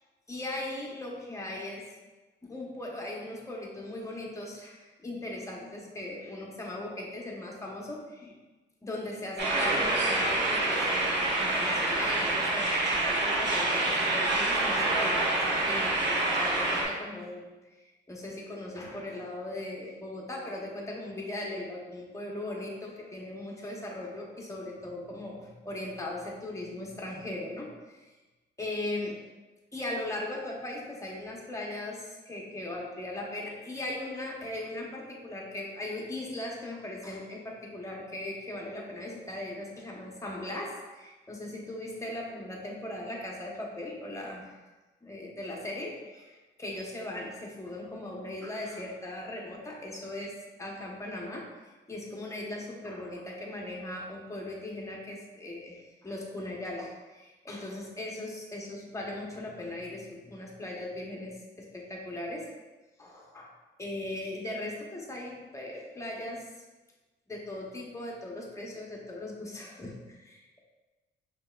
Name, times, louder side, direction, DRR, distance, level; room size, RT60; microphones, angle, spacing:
voice 1, 0.3-1.9 2.4-8.3 8.8-28.1 28.6-29.2 29.7-44.6 45.0-50.3 50.6-62.5 63.0-63.5 63.8-66.5 67.3-70.6, left 1 dB, 15° left, -2 dB, 0.9 m, -39 dB
sound 1, 9.4-16.8, right 2 dB, 60° right, 1.0 m, -27 dB
5.3 x 2.9 x 2.3 m, 1.2 s
cardioid pair, 90°, 20 cm